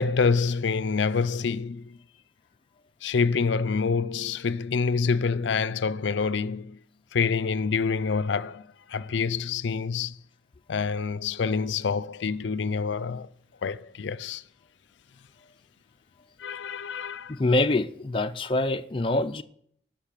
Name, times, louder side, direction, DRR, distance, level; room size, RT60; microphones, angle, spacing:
voice 1, 0.0-2.0 3.0-6.8 7.1-10.2 10.7-13.3 13.6-14.4 16.4-17.4, left 5 dB, 80° left, 0.5 m, -27 dB
voice 2, 17.3-19.4, left 2 dB, 30° left, 0.5 m, -25 dB
11.5 x 5.9 x 8.9 m
head